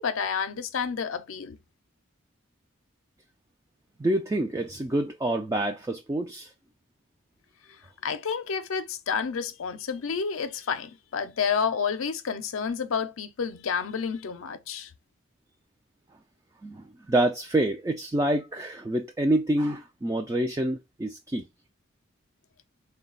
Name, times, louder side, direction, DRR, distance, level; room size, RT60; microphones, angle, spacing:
voice 1, 0.0-1.6 8.0-14.9, left 6 dB, 80° left, 0.5 m, -30 dB
voice 2, 4.0-6.5 16.6-21.5, right 1 dB, 15° right, 0.3 m, -27 dB
3.9 x 2.2 x 3.8 m
head